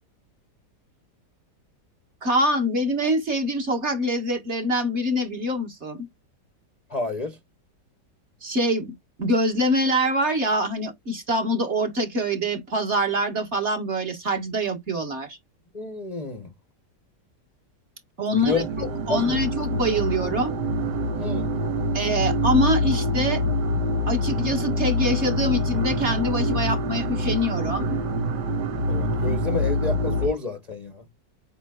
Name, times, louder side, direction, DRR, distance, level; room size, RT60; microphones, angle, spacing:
voice 1, 2.2-6.0 8.4-8.9 9.2-15.4 18.2-18.6 19.1-20.5 21.9-23.4 24.1-28.0, equal, 40° right, 1.9 m, -24 dB
voice 2, 6.9-7.4 15.7-16.5 18.3-18.7 19.1-19.4 21.2-21.5 28.9-31.0, left 3 dB, 35° left, 0.7 m, -29 dB
sound 1, 18.4-30.3, equal, 75° right, 1.5 m, -25 dB
8.0 x 5.5 x 2.3 m
omnidirectional pair, 1.9 m